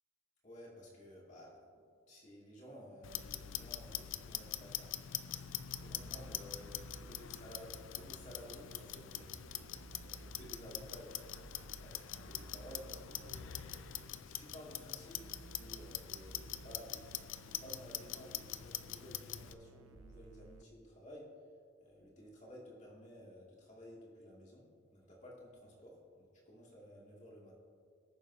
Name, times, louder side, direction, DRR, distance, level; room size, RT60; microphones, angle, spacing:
voice 1, 0.4-1.8 2.1-4.9 5.8-13.7 14.0-21.2 21.8-24.6 24.9-27.5, equal, 35° left, -4 dB, 2.3 m, -54 dB
Clock, 3.0-19.5, left 11 dB, 65° left, 0.4 m, -44 dB
sound 1, 5.7-14.1 15.1-18.5 19.3-20.6, right 3 dB, 70° right, 0.5 m, -56 dB
19.0 x 7.1 x 2.8 m, 2.3 s
head